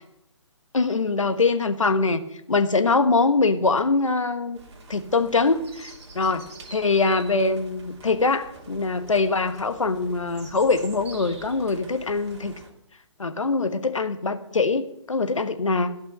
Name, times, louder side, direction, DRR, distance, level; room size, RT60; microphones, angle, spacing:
voice 1, 0.7-2.2 2.5-4.6 4.9-6.4 6.7-12.5 13.2-15.9, left 3 dB, 85° left, 9 dB, 1.3 m, -23 dB
sound 1, 4.5-12.7, right 3 dB, 60° right, 2.7 m, -46 dB
15.5 x 5.6 x 8.7 m, 0.81 s
figure-of-eight pair, 140°, 16 cm